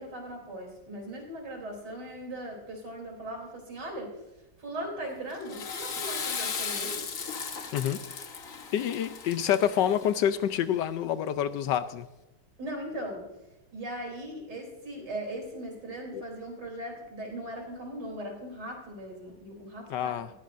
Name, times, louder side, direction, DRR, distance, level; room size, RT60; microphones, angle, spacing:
voice 1, 0.0-4.2 4.6-7.0 8.6-8.7 12.6-13.2 13.7-20.2, right 1 dB, 60° right, 1 dB, 3.9 m, -39 dB
Water / Toilet flush, 5.3-10.5, left 6 dB, 50° left, 1.4 m, -36 dB
voice 2, 8.7-12.1 16.1-16.2 19.9-20.3, left 10 dB, 75° left, 12 dB, 1.2 m, -27 dB
19.0 x 15.5 x 2.6 m, 0.98 s
omnidirectional pair, 2.0 m